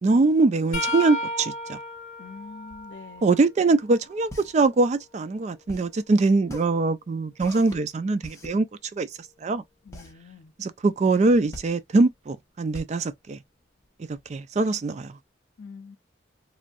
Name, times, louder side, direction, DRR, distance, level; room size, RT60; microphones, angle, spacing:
voice 1, 0.0-1.8 3.2-8.7 8.9-9.1 9.4-9.6 10.6-13.4 14.3-15.2, right 3 dB, 35° right, 0.3 m, -22 dB
sound 1, 0.7-4.5 5.0-7.0 9.9-10.1 11.3-11.5 12.8-12.9, left 1 dB, 45° left, 1.6 m, -36 dB
voice 2, 2.2-3.4 9.8-10.5 15.6-16.0, left 5 dB, 70° left, 0.5 m, -44 dB
sound 2, 4.1-14.2, equal, 15° left, 1.0 m, -44 dB
3.1 x 2.6 x 2.4 m
head